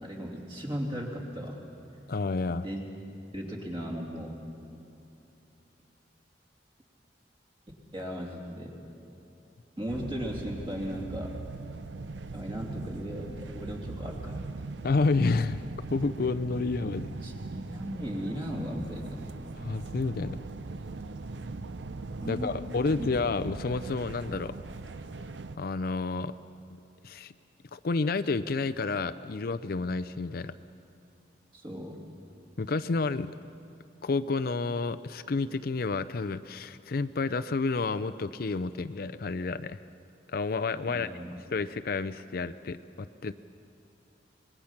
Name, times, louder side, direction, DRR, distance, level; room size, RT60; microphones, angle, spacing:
voice 1, 0.0-1.6 2.6-2.8 3.3-4.4 7.9-8.7 9.8-11.4 12.3-14.7 16.8-19.2 22.2-22.5 23.0-23.1 31.5-32.0 40.9-41.3, equal, 30° right, 0 dB, 3.0 m, -36 dB
voice 2, 2.1-2.7 14.8-15.6 15.9-17.1 19.6-20.4 22.3-24.5 25.6-26.3 27.0-27.3 27.7-30.5 32.6-33.3 34.0-39.8 40.3-43.3, left 3 dB, 55° left, 11 dB, 0.5 m, -30 dB
sound 1, 9.9-25.6, right 3 dB, 90° right, 0.6 m, -40 dB
25.0 x 20.5 x 5.9 m, 2.8 s
head